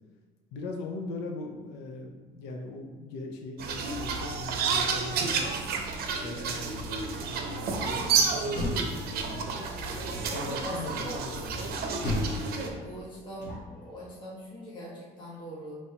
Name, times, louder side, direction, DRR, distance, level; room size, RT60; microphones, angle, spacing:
voice 1, 0.5-5.5 6.1-9.7 10.3-11.8, left 2 dB, 90° left, 2 dB, 0.5 m, -40 dB
sound 1, 3.6-12.7, right 5 dB, 65° right, 0.6 m, -30 dB
Door, 8.5-9.5 10.1-10.7 12.0-13.9, left 1 dB, 45° left, 1.4 m, -35 dB
voice 2, 10.3-11.2 12.5-13.5 13.8-15.7, equal, 25° left, -7 dB, 1.2 m, -41 dB
5.4 x 3.1 x 2.8 m, 1.4 s
cardioid pair, 110°, 17 cm